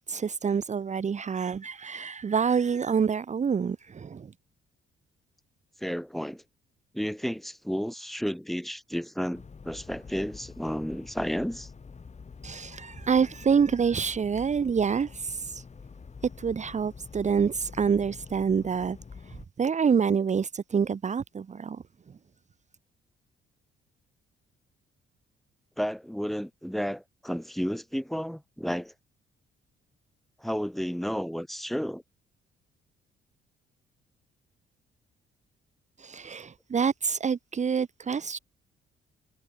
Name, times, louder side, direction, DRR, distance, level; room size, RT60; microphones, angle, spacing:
voice 1, 0.1-4.3 12.4-15.6 16.4-19.0 19.3-21.8 36.0-38.4, right 6 dB, 35° right, 1.2 m, -27 dB
voice 2, 5.8-6.4 6.9-11.7 25.8-28.9 30.4-32.0, equal, ahead, 5.9 m, -32 dB
sound 1, 9.3-19.5, left 5 dB, 35° left, 4.7 m, -46 dB
cardioid pair, 90°, 20 cm